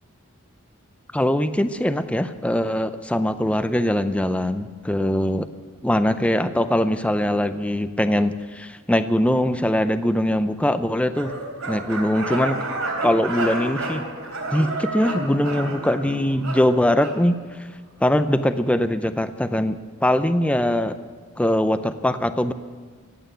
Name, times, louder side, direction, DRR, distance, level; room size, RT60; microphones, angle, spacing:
voice 1, 1.1-5.5 5.8-11.3 11.7-12.6 13.0-14.0 14.5-17.4 18.0-21.0 21.4-22.5, left 1 dB, 5° left, 10 dB, 0.5 m, -22 dB
sound 1, 11.1-17.2, right 2 dB, 65° right, 3.4 m, -30 dB
15.5 x 8.8 x 9.1 m, 1.5 s
head